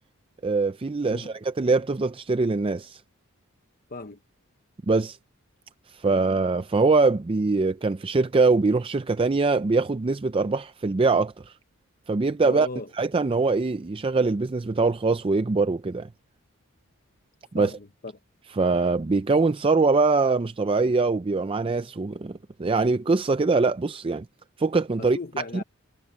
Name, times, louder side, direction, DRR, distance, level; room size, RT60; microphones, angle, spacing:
voice 1, 0.4-3.0 4.9-5.2 5.9-11.5 12.1-12.7 13.0-16.1 17.5-17.7 18.6-24.3 24.6-25.2 25.5-25.6, right 3 dB, 25° right, 0.4 m, -23 dB
voice 2, 3.9-4.2 12.4-12.9 17.5-18.1 25.0-25.6, left 3 dB, 40° left, 0.9 m, -36 dB
head